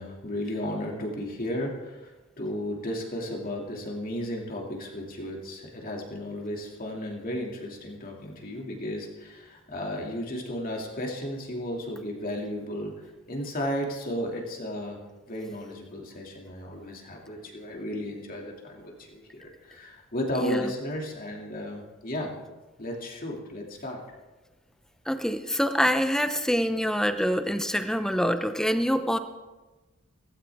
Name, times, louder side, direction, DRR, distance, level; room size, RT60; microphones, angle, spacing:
voice 1, 0.0-12.9 13.3-15.0 15.3-22.3 22.8-24.0, left 1 dB, 40° left, 0 dB, 2.5 m, -34 dB
voice 2, 25.1-29.2, equal, 5° left, 9 dB, 0.7 m, -25 dB
17.0 x 15.5 x 3.5 m, 1.2 s
head